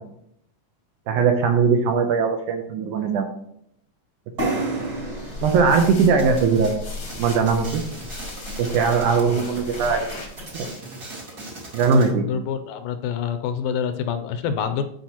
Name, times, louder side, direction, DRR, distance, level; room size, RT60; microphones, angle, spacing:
voice 1, 1.1-3.3 4.4-4.5 5.4-6.7 7.2-7.8 8.6-10.1 10.5-10.7 11.7-12.3, right 5 dB, 75° right, 4 dB, 1.9 m, -20 dB
sound 1, 4.4-8.0, right 2 dB, 40° right, 1.6 m, -31 dB
sound 2, 4.8-10.7, left 3 dB, 45° left, 0.8 m, -36 dB
sound 3, 6.2-12.1, right 2 dB, 55° right, 0.7 m, -39 dB
voice 2, 12.1-14.8, left 7 dB, 80° left, 9 dB, 2.2 m, -27 dB
11.5 x 4.8 x 2.9 m, 0.71 s
omnidirectional pair, 4.0 m